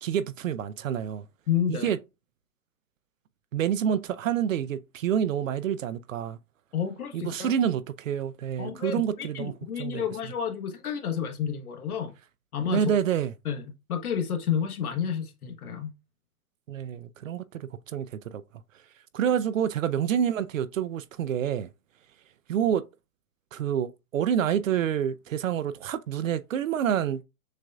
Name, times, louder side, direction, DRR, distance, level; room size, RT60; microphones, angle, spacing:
voice 1, 0.0-1.2 1.7-2.0 3.5-6.4 7.1-9.5 9.8-10.1 12.7-13.3 16.7-18.4 19.1-21.7 22.5-22.9 23.5-27.2, right 9 dB, 60° right, 0.5 m, -28 dB
voice 2, 1.5-1.9 6.7-7.5 8.6-12.1 12.5-12.9 13.4-13.6 13.9-15.9, left 8 dB, 80° left, 1.3 m, -30 dB
6.4 x 2.5 x 2.3 m
hypercardioid pair, 175°, 44 cm